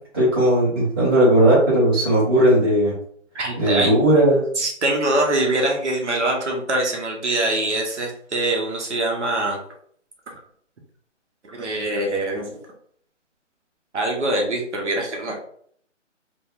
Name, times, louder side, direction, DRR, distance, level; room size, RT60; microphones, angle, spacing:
voice 1, 0.1-2.9 3.6-4.4, right 1 dB, 20° right, -10 dB, 0.9 m, -17 dB
voice 2, 3.3-3.9 4.6-9.6 11.4-12.5 13.9-15.4, right 1 dB, 65° right, 0 dB, 0.8 m, -23 dB
3.6 x 2.1 x 2.4 m, 0.63 s
hypercardioid pair, 175°, 37 cm